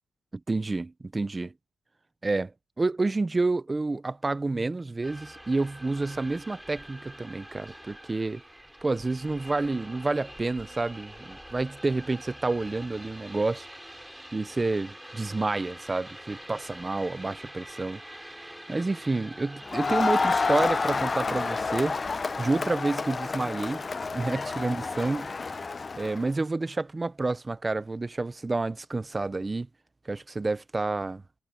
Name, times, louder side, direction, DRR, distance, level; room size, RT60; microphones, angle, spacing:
voice 1, 0.3-1.5 2.2-2.5 2.8-8.4 8.8-13.7 14.3-18.0 18.7-22.0 22.4-23.8 24.1-25.3 26.0-29.7 30.1-31.2, right 3 dB, 20° right, 0.5 m, -29 dB
sound 1, 5.0-20.9, equal, 5° right, 7.2 m, -46 dB
Crowd, 19.7-26.2, left 4 dB, 30° left, 0.5 m, -29 dB
wide cardioid pair, 135°, 0 cm